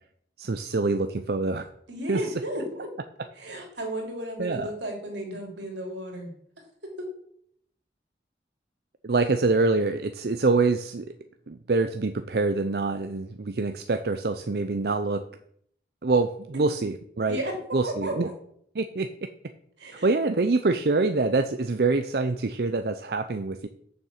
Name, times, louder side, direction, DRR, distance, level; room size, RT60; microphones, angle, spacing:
voice 1, 0.4-1.6 2.1-2.2 4.4-4.7 9.0-11.1 11.5-15.3 16.0-17.4 17.7-18.3 18.8-19.1 20.0-23.7, right 3 dB, 60° right, 8 dB, 0.6 m, -25 dB
voice 2, 1.9-2.9 3.3-7.1 17.3-18.3 19.8-20.1, right 1 dB, 90° right, 1 dB, 3.2 m, -34 dB
7.1 x 6.5 x 7.4 m, 0.66 s
head